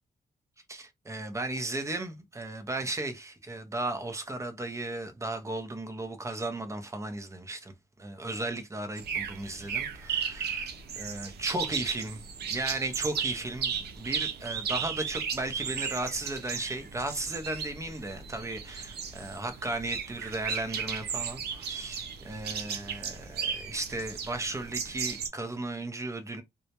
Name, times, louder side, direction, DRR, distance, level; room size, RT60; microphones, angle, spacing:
voice 1, 0.7-26.4, right 2 dB, 20° right, 0.6 m, -35 dB
sound 1, 9.0-25.3, right 7 dB, 85° right, 0.5 m, -35 dB
2.2 x 2.0 x 2.8 m
cardioid pair, 100°, 16 cm